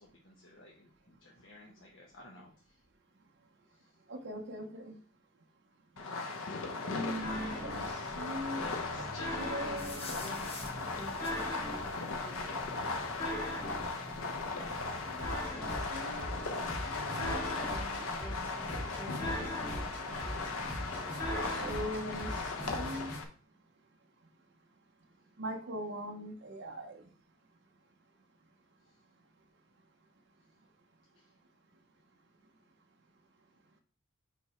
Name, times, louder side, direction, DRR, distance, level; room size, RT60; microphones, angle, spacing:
voice 1, 0.0-2.8 3.7-3.9 7.5-8.0 8.5-10.7 28.9-29.0 31.1-31.3, left 1 dB, 65° left, -2 dB, 1.2 m, -52 dB
voice 2, 4.0-5.0 6.7-9.0 9.3-10.1 15.0-15.5 15.9-18.9 21.3-23.6 23.9-24.3 24.6-24.7 25.0-25.1 25.4-27.1 29.4-29.5 30.6-30.7 33.7-33.8, equal, 60° right, 1 dB, 1.1 m, -43 dB
Fireworks, 6.0-23.2, left 3 dB, 90° left, 0.9 m, -38 dB
sound 1, 7.2-23.2, equal, 10° left, 2.8 m, -41 dB
sound 2, 9.8-15.5, left 2 dB, 30° left, 1.1 m, -50 dB
5.2 x 4.9 x 4.4 m, 0.41 s
head